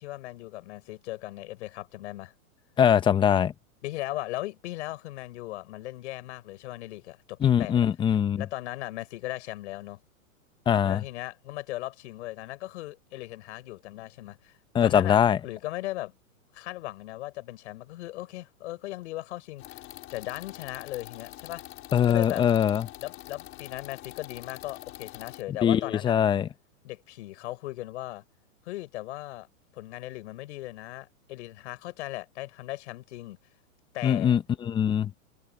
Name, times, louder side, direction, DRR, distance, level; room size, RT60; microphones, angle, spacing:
voice 1, 0.0-2.3 3.8-7.9 8.4-10.0 10.8-14.6 14.8-16.1 16.5-19.8 20.1-21.6 22.1-22.5 23.0-26.2 26.8-28.2 28.6-29.5 29.7-33.4 33.9-34.4, left 17 dB, 55° left, 6.4 m, -38 dB
voice 2, 2.8-3.5 7.4-8.5 10.7-11.0 14.7-15.4 21.9-22.9 25.6-26.5 34.0-35.1, left 9 dB, 10° left, 0.8 m, -22 dB
sound 1, 19.6-25.4, left 17 dB, 30° left, 4.5 m, -45 dB
hypercardioid pair, 145°, 42 cm